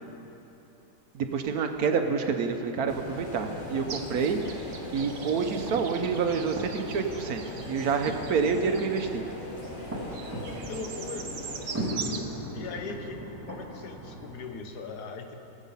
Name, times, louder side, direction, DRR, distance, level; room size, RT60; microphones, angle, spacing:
voice 1, 1.1-4.4 4.9-9.3, right 5 dB, 70° right, 6 dB, 1.2 m, -28 dB
sound 1, 2.9-11.9, left 1 dB, 35° left, 1.2 m, -40 dB
sound 2, 3.6-14.4, equal, 10° right, 2.1 m, -40 dB
sound 3, 3.9-12.2, right 6 dB, 55° right, 0.8 m, -42 dB
voice 2, 10.7-11.3 12.5-15.3, left 4 dB, 75° left, 5 dB, 1.5 m, -39 dB
19.5 x 7.4 x 5.5 m, 3.0 s
omnidirectional pair, 1.7 m